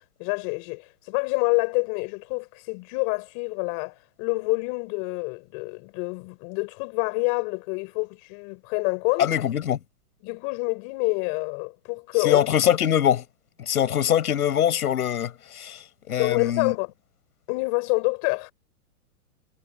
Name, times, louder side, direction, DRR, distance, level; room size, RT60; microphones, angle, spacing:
voice 1, 0.0-9.3 10.2-12.5 16.2-16.9 17.5-18.5, left 35 dB, 30° left, 7.3 m, -27 dB
voice 2, 9.2-9.8 12.2-13.2 13.6-15.8 16.1-16.7, left 10 dB, 80° left, 7.6 m, -23 dB
hypercardioid pair, 165°, 44 cm